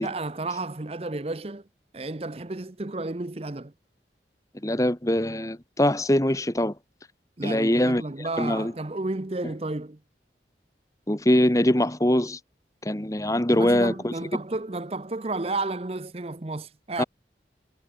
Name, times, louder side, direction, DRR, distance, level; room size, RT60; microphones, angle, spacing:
voice 1, 0.0-1.6 1.9-3.7 7.4-10.0 13.5-17.0, right 2 dB, 35° right, 0.8 m, -32 dB
voice 2, 4.6-6.7 7.4-8.7 11.1-12.4 12.8-14.1 17.0-17.1, left 1 dB, 20° left, 1.3 m, -23 dB
head